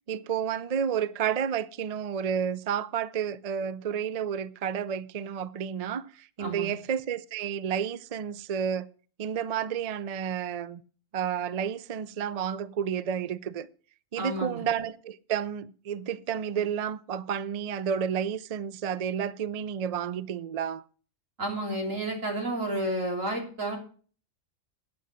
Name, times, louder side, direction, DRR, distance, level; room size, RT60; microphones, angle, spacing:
voice 1, 0.1-8.9 9.2-10.8 11.1-13.7 14.1-20.8, right 8 dB, 50° right, 0.4 m, -31 dB
voice 2, 6.4-6.7 14.2-14.6 21.4-23.8, right 1 dB, 85° right, 3.8 m, -31 dB
9.4 x 8.4 x 7.5 m
omnidirectional pair, 1.3 m